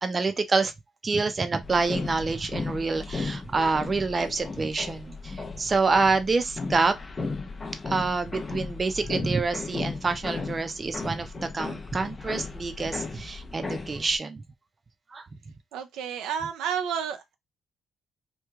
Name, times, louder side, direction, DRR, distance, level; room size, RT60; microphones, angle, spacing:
voice 1, 0.0-0.7 1.0-6.9 7.9-14.4 15.1-15.3, right 4 dB, 30° right, 0.6 m, -27 dB
sound 1, 1.6-14.2, left 4 dB, 25° left, 0.7 m, -35 dB
voice 2, 15.7-17.3, right 8 dB, 90° right, 0.4 m, -31 dB
3.1 x 2.3 x 3.4 m
cardioid pair, 90°, 0 cm